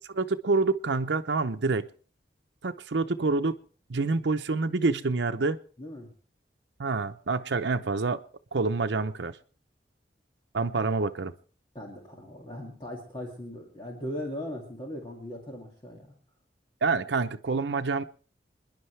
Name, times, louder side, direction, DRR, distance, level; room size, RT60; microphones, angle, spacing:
voice 1, 0.1-1.9 2.6-3.6 3.9-5.6 6.8-8.2 8.5-9.4 10.5-11.3 16.8-18.0, right 3 dB, 85° right, 8 dB, 0.7 m, -27 dB
voice 2, 5.8-6.1 11.7-16.1, left 1 dB, 25° left, -1 dB, 2.2 m, -39 dB
26.5 x 10.5 x 3.3 m, 0.42 s
head